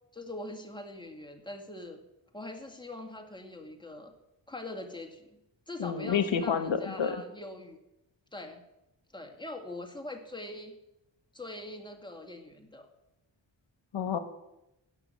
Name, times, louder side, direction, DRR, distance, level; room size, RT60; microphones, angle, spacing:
voice 1, 0.1-2.0 2.3-4.1 4.5-5.4 5.7-7.8 8.3-8.6 9.1-10.8 11.3-12.9, left 2 dB, 10° left, 4 dB, 2.2 m, -42 dB
voice 2, 5.8-7.2 13.9-14.2, left 7 dB, 75° left, 10 dB, 1.2 m, -29 dB
16.5 x 6.2 x 8.4 m, 0.90 s
wide cardioid pair, 75°, 46 cm